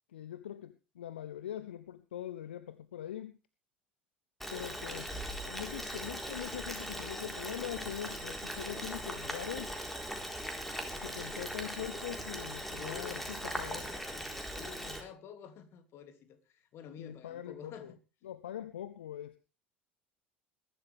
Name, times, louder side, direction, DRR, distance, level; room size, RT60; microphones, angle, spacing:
voice 1, 0.1-3.4 4.5-5.2 5.4-9.7 11.0-13.2 13.6-13.8 17.0-17.9 18.2-19.4, left 11 dB, 70° left, 14 dB, 0.8 m, -42 dB
Boiling, 4.4-15.0, equal, 5° left, 4.0 m, -40 dB
voice 2, 12.8-13.3 13.6-18.0, left 8 dB, 45° left, 9 dB, 2.9 m, -49 dB
21.0 x 12.0 x 3.5 m, 0.31 s
figure-of-eight pair, 70°, 6 cm